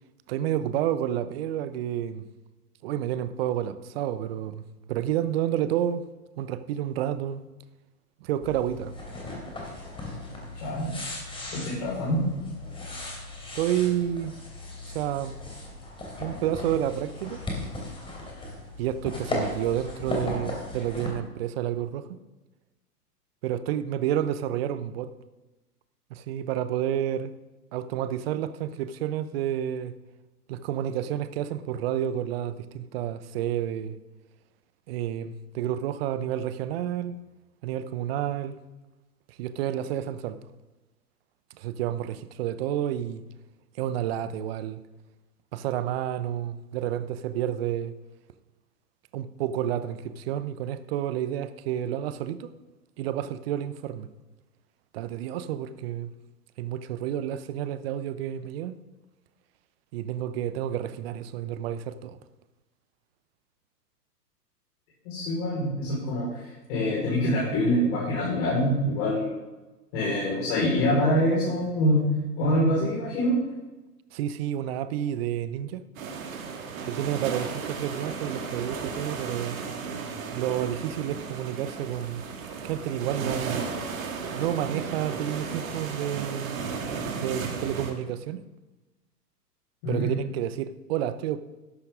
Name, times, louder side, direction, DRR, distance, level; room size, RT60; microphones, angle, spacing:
voice 1, 0.3-2.2 2.8-4.6 4.9-6.1 6.4-7.4 8.2-8.9 13.5-14.3 14.9-15.3 16.2-17.4 18.8-22.2 23.4-25.1 26.1-27.3 27.7-29.9 30.5-34.0 34.9-37.2 37.6-38.6 39.3-40.4 41.6-43.2 43.8-44.8 45.5-48.0 49.1-52.5 53.0-54.1 54.9-56.1 56.6-58.7 59.9-62.2 74.1-75.8 76.8-79.6 80.3-82.2 82.6-83.7 84.3-86.6 87.2-88.4 89.9-91.4, right 11 dB, 40° right, 0.8 m, -30 dB
sound 1, 8.4-21.1, left 2 dB, 10° left, 3.0 m, -37 dB
voice 2, 10.6-10.9 11.5-12.2 65.0-66.4 66.7-69.3 69.9-72.0 72.4-73.3 89.8-90.1, equal, 40° left, 4.8 m, -25 dB
sound 2, 75.9-87.9, right 5 dB, 55° right, 2.2 m, -34 dB
13.5 x 11.5 x 3.7 m
figure-of-eight pair, 110°, 48 cm